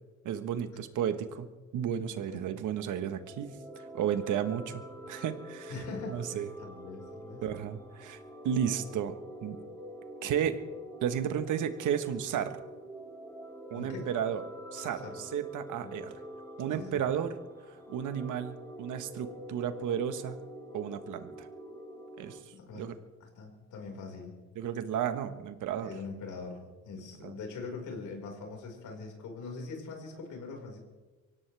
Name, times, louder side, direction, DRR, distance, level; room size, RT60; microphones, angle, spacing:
voice 1, 0.2-1.5 1.7-5.7 6.1-6.5 7.4-8.2 8.4-9.1 9.4-9.6 10.2-10.5 11.0-12.6 13.7-14.4 14.7-16.2 16.6-17.3 17.7-20.4 20.7-21.5 22.2-22.4 22.7-23.0 24.5-25.9 27.2-27.3, right 9 dB, 80° right, 9 dB, 1.4 m, -33 dB
sound 1, 3.1-22.4, equal, 10° left, 5.1 m, -46 dB
voice 2, 5.7-7.4 13.7-14.1 15.0-15.2 15.8-15.9 16.8-17.0 22.5-22.9 23.2-24.4 25.8-30.8, left 4 dB, 80° left, 1 dB, 5.1 m, -42 dB
24.5 x 17.0 x 3.5 m, 1.2 s
cardioid pair, 90°, 30 cm